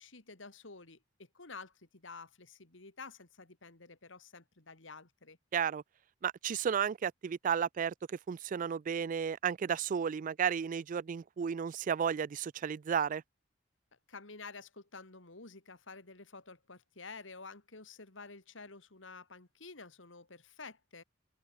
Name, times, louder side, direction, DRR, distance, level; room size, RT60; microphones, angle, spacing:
voice 1, 0.0-5.4 14.1-21.0, left 4 dB, 75° left, 2.6 m, -50 dB
voice 2, 5.5-5.8 6.2-13.2, right 7 dB, 45° right, 0.3 m, -33 dB
open air
head